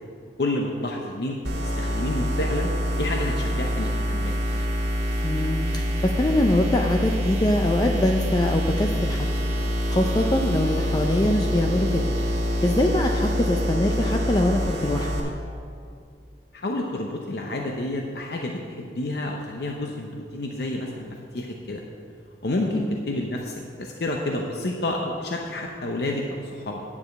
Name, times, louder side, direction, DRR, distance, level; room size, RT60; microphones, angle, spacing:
voice 1, 0.4-1.4 1.8-2.7 3.0-4.4 16.5-21.8 22.4-26.8, left 1 dB, 65° left, 1 dB, 0.7 m, -29 dB
sound 1, 1.4-15.2, equal, 80° right, 1.9 m, -26 dB
voice 2, 5.2-9.3 9.9-12.1 12.6-15.3 22.7-23.0, left 1 dB, 25° left, 2 dB, 0.4 m, -23 dB
9.6 x 4.9 x 7.7 m, 2.3 s
head